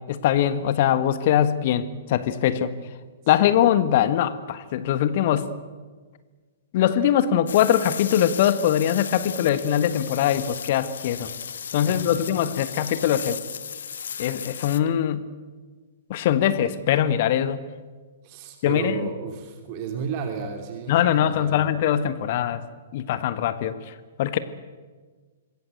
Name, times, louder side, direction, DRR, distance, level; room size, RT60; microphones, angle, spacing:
voice 1, 0.0-2.7 3.3-5.5 6.7-11.3 11.7-13.4 14.2-15.3 16.1-17.6 18.6-18.9 20.9-22.6 22.9-24.4, left 10 dB, 45° left, 13 dB, 1.4 m, -22 dB
voice 2, 3.2-3.5 11.9-12.4 18.2-21.6, right 6 dB, 35° right, 4 dB, 3.3 m, -33 dB
sound 1, 7.5-14.8, left 7 dB, 60° left, 1.4 m, -36 dB
26.5 x 22.0 x 8.2 m, 1.4 s
figure-of-eight pair, 115°, 0 cm